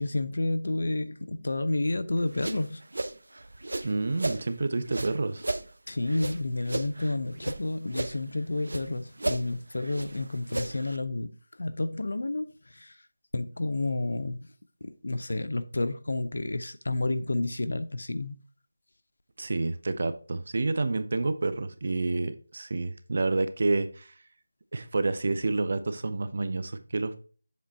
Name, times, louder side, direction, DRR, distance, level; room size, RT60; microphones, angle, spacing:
voice 1, 0.0-2.8 5.9-13.0 13.3-14.5 14.8-18.4, left 2 dB, 70° left, 0.6 m, -30 dB
sound 1, 2.2-4.4 4.8-7.6 7.9-8.9 9.2-11.0, right 2 dB, 90° right, 0.6 m, -34 dB
voice 2, 3.8-5.4 19.4-24.1 24.7-27.2, right 3 dB, 45° right, 0.6 m, -29 dB
7.4 x 3.4 x 4.2 m
figure-of-eight pair, 175°, 0 cm